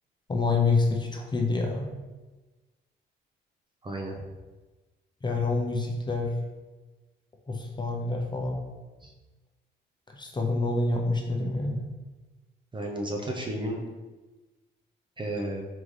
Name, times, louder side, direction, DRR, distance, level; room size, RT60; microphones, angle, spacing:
voice 1, 0.3-1.9 5.2-6.3 7.5-8.6 10.1-11.8, left 3 dB, 20° left, 0 dB, 0.7 m, -27 dB
voice 2, 3.8-4.2 9.0-9.1 12.7-13.8 15.2-15.6, right 1 dB, 25° right, 0 dB, 0.6 m, -32 dB
3.9 x 3.7 x 3.2 m, 1.2 s
cardioid pair, 90°, 20 cm